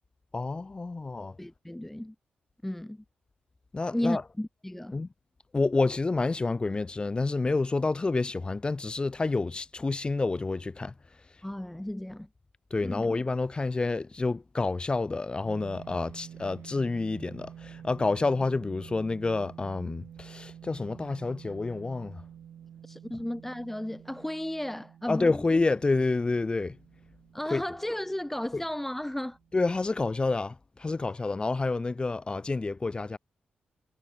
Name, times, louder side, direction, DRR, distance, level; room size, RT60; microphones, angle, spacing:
voice 1, 0.3-1.4 3.7-4.2 4.9-5.1 5.5-10.9 12.7-22.2 25.1-26.8 27.5-27.6 28.5-28.6 29.5-33.2, left 3 dB, 30° left, 1.2 m, -29 dB
voice 2, 1.4-2.1 2.6-3.0 3.9-5.0 11.4-12.3 12.8-13.1 22.8-25.4 27.3-29.4, left 1 dB, 5° left, 0.4 m, -34 dB
sound 1, 15.4-29.9, right 9 dB, 80° right, 2.8 m, -49 dB
cardioid pair, 70°, 3 cm